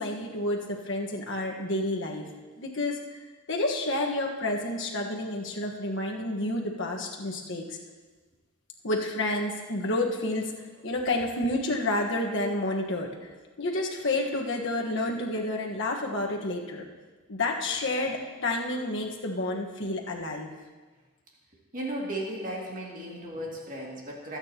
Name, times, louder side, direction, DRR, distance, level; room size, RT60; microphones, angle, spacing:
voice 1, 0.0-2.3 2.6-3.0 3.5-7.8 8.8-13.1 13.6-16.8 17.3-20.5, left 2 dB, 60° left, 0 dB, 1.4 m, -30 dB
voice 2, 21.7-24.4, right 1 dB, 40° right, -3 dB, 2.3 m, -35 dB
24.5 x 8.8 x 2.9 m, 1.3 s
head